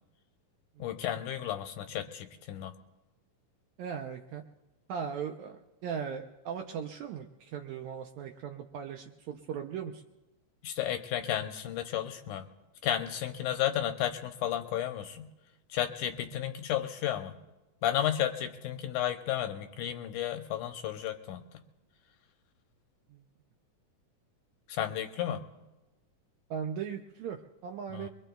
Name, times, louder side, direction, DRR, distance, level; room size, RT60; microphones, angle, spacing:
voice 1, 0.8-2.7 10.6-12.5 12.8-15.3 15.7-17.4 17.8-21.4 24.7-25.4 27.9-28.1, left 11 dB, 80° left, 6 dB, 2.1 m, -33 dB
voice 2, 3.8-4.4 4.9-10.0 23.1-23.2 26.5-28.1, right 7 dB, 80° right, 3 dB, 1.7 m, -38 dB
23.5 x 23.0 x 2.3 m, 1.1 s
omnidirectional pair, 3.9 m